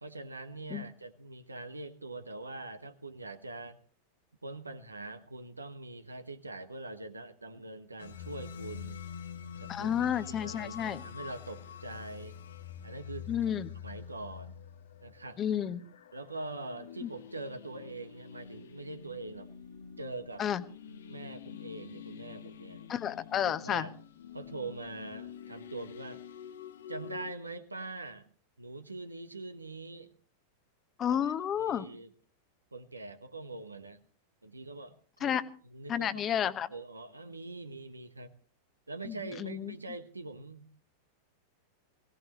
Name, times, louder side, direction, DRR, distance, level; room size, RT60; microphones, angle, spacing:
voice 1, 0.0-3.8 4.4-9.0 9.6-10.0 10.2-12.4 12.8-13.5 13.8-14.6 15.0-15.4 16.1-19.5 20.0-20.4 21.1-22.8 23.4-23.9 24.3-26.2 26.9-28.2 28.6-30.1 31.1-31.2 31.6-32.1 32.7-34.0 34.4-38.3 38.9-40.6, right 2 dB, 80° right, 10 dB, 1.3 m, -43 dB
sound 1, 8.0-27.3, left 8 dB, 65° left, 1.2 m, -47 dB
voice 2, 9.7-11.0 13.3-13.7 15.4-15.8 17.0-17.1 20.4-20.6 22.9-23.9 31.0-31.8 35.2-35.4 35.9-36.7 39.0-39.7, left 9 dB, 25° left, 14 dB, 1.0 m, -31 dB
21.5 x 17.5 x 3.1 m, 0.42 s
figure-of-eight pair, 90°, 0 cm